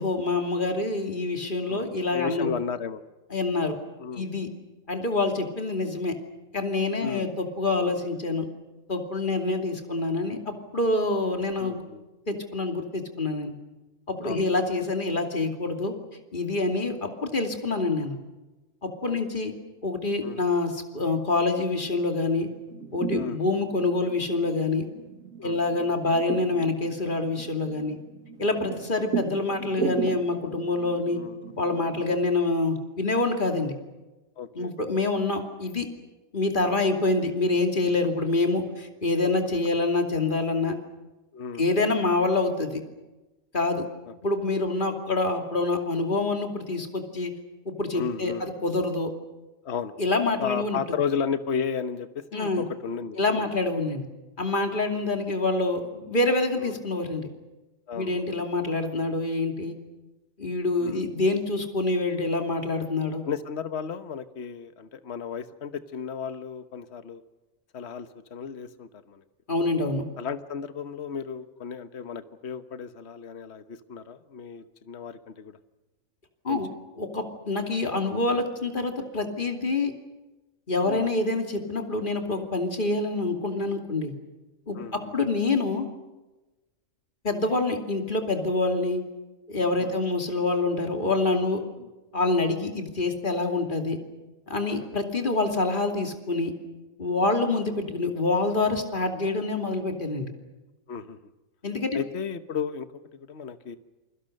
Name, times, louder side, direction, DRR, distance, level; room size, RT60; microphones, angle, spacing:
voice 1, 0.0-2.6 3.3-3.8 4.1-4.5 4.9-6.2 6.5-8.5 8.9-11.8 12.3-13.5 14.1-15.9 16.3-18.2 18.8-19.5 19.8-22.5 22.9-24.9 25.4-28.0 28.4-31.2 31.6-33.7 34.5-35.9 36.3-40.8 41.6-42.8 43.5-43.9 44.2-47.3 47.6-49.1 50.0-50.8 52.3-52.6 53.2-54.0 54.4-57.3 57.9-59.8 60.4-63.2 69.5-70.0 76.4-76.7 77.0-79.9 80.7-84.1 84.7-85.9 87.2-89.0 89.5-91.6 92.1-94.0 94.5-96.5 97.0-100.3 101.6-102.0, left 3 dB, 40° left, 4 dB, 2.9 m, -26 dB
voice 2, 1.6-3.0 4.0-4.3 7.0-7.3 11.6-12.0 14.2-14.4 19.0-19.2 20.2-20.4 23.1-23.4 25.4-25.6 28.4-28.6 31.1-31.6 34.4-34.7 41.3-41.6 44.1-44.2 47.9-48.4 49.6-49.9 50.4-53.5 56.6-56.8 57.9-58.2 60.8-61.0 63.2-67.2 67.7-69.2 70.2-75.6 76.5-76.6 80.8-81.1 84.7-85.1 89.8-90.0 91.8-91.9 94.6-94.9 100.9-101.2 101.9-103.8, left 6 dB, 55° left, 11 dB, 1.4 m, -34 dB
sound 1, 22.5-32.3, right 6 dB, 85° right, 2.4 m, -36 dB
28.5 x 23.0 x 6.6 m, 1.1 s
omnidirectional pair, 1.4 m